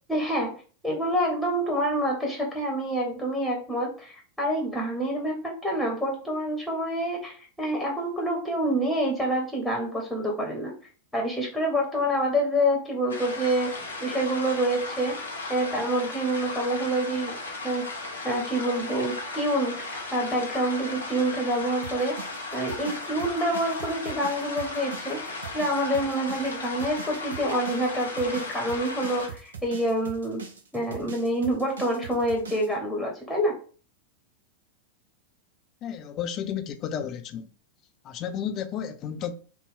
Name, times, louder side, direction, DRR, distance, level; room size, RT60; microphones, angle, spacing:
voice 1, 0.1-0.5 0.8-10.7 11.1-15.2 15.5-17.3 17.6-17.9 18.2-22.3 22.5-30.4 30.7-33.6, right 1 dB, ahead, 1.0 m, -27 dB
sound 1, 13.1-29.3, left 3 dB, 75° left, 1.0 m, -36 dB
sound 2, 21.8-32.7, right 6 dB, 70° right, 0.6 m, -42 dB
voice 2, 35.8-37.5 38.0-39.3, left 8 dB, 35° left, 0.5 m, -32 dB
3.5 x 2.2 x 3.7 m
figure-of-eight pair, 90°, 0 cm